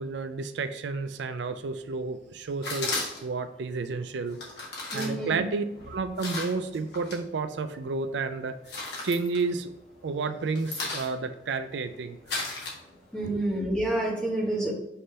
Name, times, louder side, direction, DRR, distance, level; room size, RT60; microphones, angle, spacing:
voice 1, 0.0-4.4 4.9-8.6 9.0-9.7 10.0-12.2 13.2-13.4, right 4 dB, 70° right, 9 dB, 0.4 m, -31 dB
sound 1, 2.6-3.4 4.3-7.2 7.6-8.1 8.4-10.0 10.3-13.3, left 3 dB, 65° left, 1.7 m, -36 dB
voice 2, 4.9-5.4 13.1-14.7, right 1 dB, 5° left, -3 dB, 1.4 m, -28 dB
5.7 x 3.3 x 5.2 m, 0.90 s
head